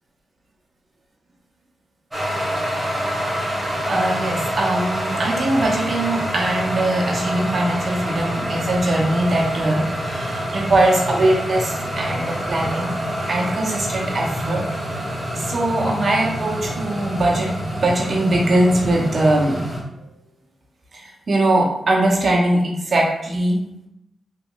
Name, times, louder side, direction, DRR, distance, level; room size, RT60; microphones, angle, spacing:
sound 1, 2.1-19.8, equal, 20° right, 1.3 m, -26 dB
voice 1, 3.9-12.9 13.3-14.6 15.3-17.5 17.8-19.6 20.9-23.6, right 1 dB, 55° right, -2 dB, 0.8 m, -21 dB
2.9 x 2.9 x 2.4 m, 0.84 s
supercardioid pair, 40°, 0 cm